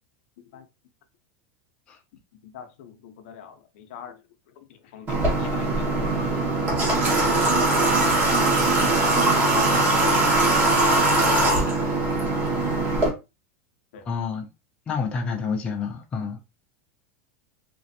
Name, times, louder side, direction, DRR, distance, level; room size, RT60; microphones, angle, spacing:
voice 1, 2.4-4.2 4.9-5.9 6.2-6.4 7.3-7.8 8.9-9.1 9.5-9.7 10.0-10.4 11.2-11.5 13.9-14.1, left 8 dB, 60° left, 0.6 m, -42 dB
Water / Water tap faucet, 5.1-13.1, right 2 dB, 25° right, 0.9 m, -21 dB
voice 2, 14.1-14.5 14.9-16.4, left 5 dB, 15° left, 0.4 m, -28 dB
3.0 x 2.5 x 2.6 m
supercardioid pair, 170°, 7 cm